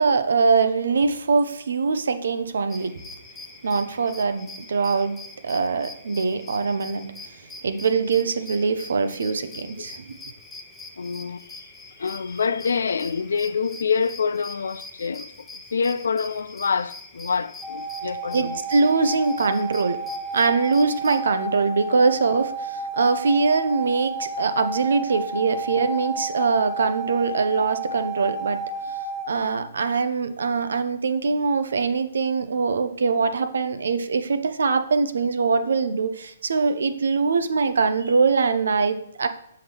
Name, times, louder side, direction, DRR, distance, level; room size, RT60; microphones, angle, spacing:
voice 1, 0.0-3.0 3.6-7.1 7.6-10.2 18.3-20.0 20.3-28.6 29.3-39.3, right 4 dB, 70° right, 0.7 m, -23 dB
sound 1, 2.7-21.3, left 3 dB, 10° left, 1.0 m, -43 dB
voice 2, 11.0-11.7 12.0-18.6, left 5 dB, 75° left, 0.3 m, -26 dB
sound 2, 17.6-29.3, right 2 dB, 25° right, 1.3 m, -32 dB
7.8 x 5.7 x 3.4 m
hypercardioid pair, 135°, 0 cm